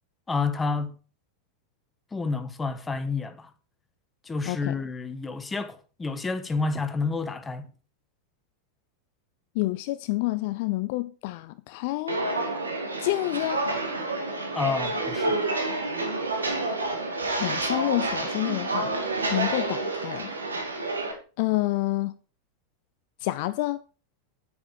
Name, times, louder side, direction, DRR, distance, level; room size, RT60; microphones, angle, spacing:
voice 1, 0.3-0.9 2.1-3.5 4.3-7.7 14.5-15.4, left 4 dB, 15° left, 1.2 m, -29 dB
voice 2, 4.4-4.9 9.6-12.2 13.0-13.7 17.4-18.9 19.3-20.3 21.4-22.1 23.2-23.8, left 19 dB, 50° left, 0.5 m, -28 dB
Walk footsteps, 12.1-21.1, right 2 dB, 75° right, 2.7 m, -29 dB
9.0 x 9.0 x 4.8 m
figure-of-eight pair, 90°, 0 cm